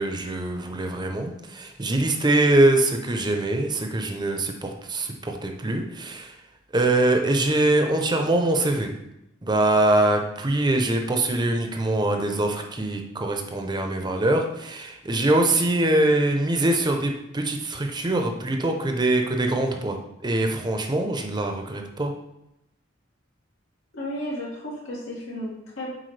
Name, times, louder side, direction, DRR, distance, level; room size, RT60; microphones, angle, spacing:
voice 1, 0.0-6.3 6.7-8.9 9.4-20.0 20.2-22.1, right 2 dB, 20° right, 3 dB, 0.7 m, -23 dB
voice 2, 23.9-25.9, equal, 90° left, -5 dB, 2.5 m, -33 dB
7.8 x 4.8 x 3.3 m, 0.84 s
head